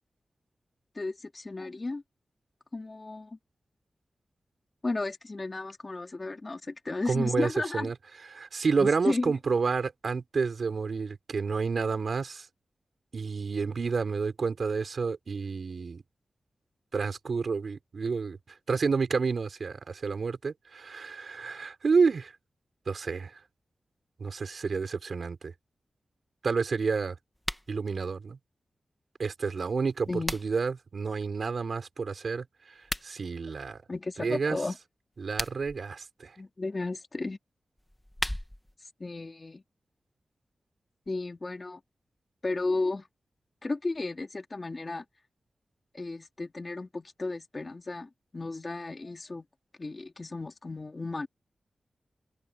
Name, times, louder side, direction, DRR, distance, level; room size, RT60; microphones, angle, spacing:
voice 1, 0.9-2.0 2.7-3.4 4.8-7.9 8.8-9.4 30.1-30.4 33.9-34.8 36.4-37.4 39.0-39.6 41.1-41.8 42.4-43.1 43.6-45.0 45.9-49.5 49.8-51.3, left 3 dB, 30° left, 3.3 m, -34 dB
voice 2, 7.1-7.9 8.3-12.5 13.1-16.0 16.9-18.4 18.7-22.3 22.9-23.3 24.2-25.5 26.4-27.2 27.7-28.4 29.2-32.4 33.0-33.8 34.2-34.6 35.2-36.3, right 5 dB, 60° right, 5.6 m, -29 dB
sound 1, 27.3-27.7 29.7-30.7 32.7-33.1 35.1-35.8 37.8-38.7, left 1 dB, 5° left, 1.5 m, -36 dB
open air
wide cardioid pair, 145°, 0 cm